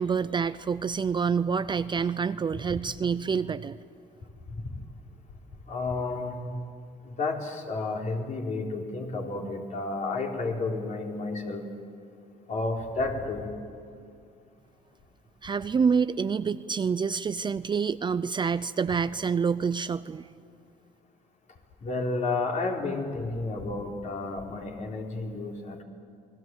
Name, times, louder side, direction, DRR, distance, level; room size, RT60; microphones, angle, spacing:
voice 1, 0.0-3.8 15.4-20.3, right 6 dB, 25° right, 14 dB, 0.5 m, -27 dB
voice 2, 5.7-6.5 7.0-11.6 12.5-13.5 21.8-25.8, left 3 dB, 45° left, 0 dB, 4.4 m, -31 dB
29.0 x 21.0 x 8.0 m, 2.4 s
cardioid pair, 110°, 17 cm